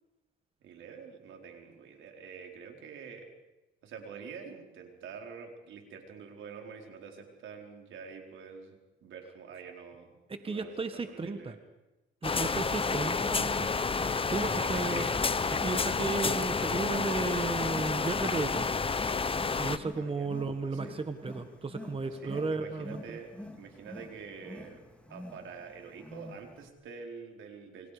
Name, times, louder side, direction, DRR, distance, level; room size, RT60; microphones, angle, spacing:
voice 1, 0.6-3.3 3.8-10.2 10.4-11.6 12.3-13.7 14.2-15.2 19.9-20.3 20.6-21.0 22.0-24.8 25.1-27.9, right 6 dB, 80° right, 3 dB, 4.3 m, -47 dB
voice 2, 10.3-11.5 12.2-13.7 14.2-15.1 15.6-18.7 19.6-23.2, right 3 dB, 30° right, 8 dB, 1.7 m, -34 dB
sound 1, 12.2-19.8, left 4 dB, 30° left, 1.1 m, -30 dB
Wild animals, 12.4-26.7, left 1 dB, 5° left, 4.2 m, -47 dB
29.0 x 24.0 x 5.1 m, 1.0 s
cardioid pair, 90°, 20 cm